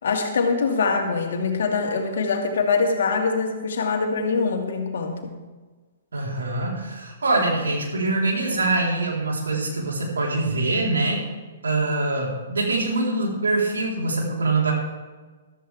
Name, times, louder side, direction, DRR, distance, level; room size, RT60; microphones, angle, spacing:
voice 1, 0.0-5.4, left 4 dB, 65° left, 3 dB, 2.3 m, -23 dB
voice 2, 6.1-11.3 11.6-14.7, right 2 dB, 75° right, -2 dB, 4.2 m, -24 dB
14.0 x 13.5 x 3.6 m, 1.3 s
figure-of-eight pair, 120°, 0 cm